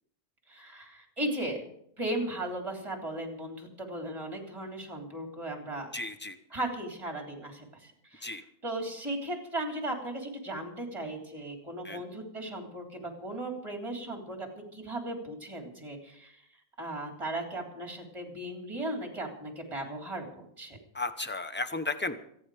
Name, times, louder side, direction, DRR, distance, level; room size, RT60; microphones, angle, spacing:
voice 1, 0.5-1.6 2.0-5.9 6.5-16.4 16.8-20.8, right 1 dB, 20° right, 2 dB, 3.3 m, -37 dB
voice 2, 5.9-6.4 8.2-8.4 11.8-12.0 20.9-22.2, left 3 dB, 15° left, 9 dB, 0.4 m, -34 dB
25.5 x 9.6 x 5.0 m, 0.71 s
omnidirectional pair, 1.7 m